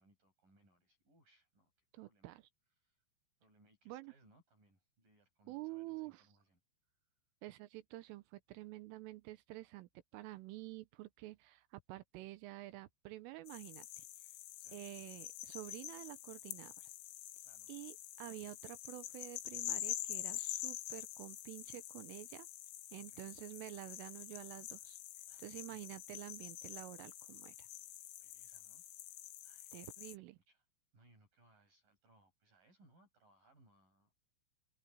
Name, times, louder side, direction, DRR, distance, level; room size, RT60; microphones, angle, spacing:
voice 1, 0.0-1.7 2.0-2.4 2.8-3.0 3.4-6.6 14.6-14.8 17.4-17.7 23.0-23.3 25.3-25.5 28.2-28.8 29.4-29.8 30.5-30.6 30.9-34.2, right 2 dB, 40° right, 9.6 m, -70 dB
voice 2, 1.9-2.4 3.9-4.1 5.5-6.2 7.4-14.0 14.7-16.9 17.7-22.5 22.9-25.0 25.4-27.7 29.7-30.4, right 18 dB, 80° right, 3.4 m, -49 dB
sound 1, 13.5-30.2, left 14 dB, 75° left, 3.5 m, -47 dB
omnidirectional pair, 5.9 m